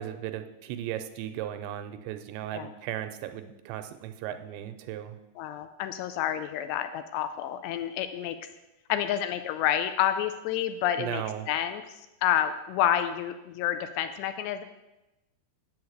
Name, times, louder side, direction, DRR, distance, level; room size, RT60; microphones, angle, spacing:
voice 1, 0.0-5.2 11.0-11.5, right 11 dB, 85° right, 8 dB, 2.7 m, -36 dB
voice 2, 5.4-8.4 8.9-11.8 12.2-14.6, left 10 dB, 80° left, 9 dB, 2.6 m, -29 dB
8.6 x 7.1 x 7.8 m, 0.99 s
omnidirectional pair, 5.2 m